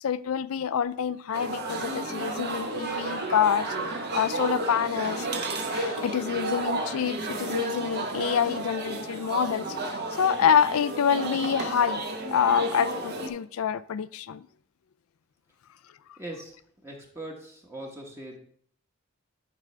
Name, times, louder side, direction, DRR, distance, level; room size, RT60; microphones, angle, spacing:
voice 1, 0.0-5.3 5.7-14.5 16.1-16.2, left 8 dB, 75° left, 0.4 m, -27 dB
sound 1, 1.3-13.3, right 2 dB, 50° right, 1.1 m, -32 dB
voice 2, 16.2-16.5 16.8-18.4, right 1 dB, 10° right, 1.1 m, -40 dB
11.0 x 5.0 x 3.3 m
head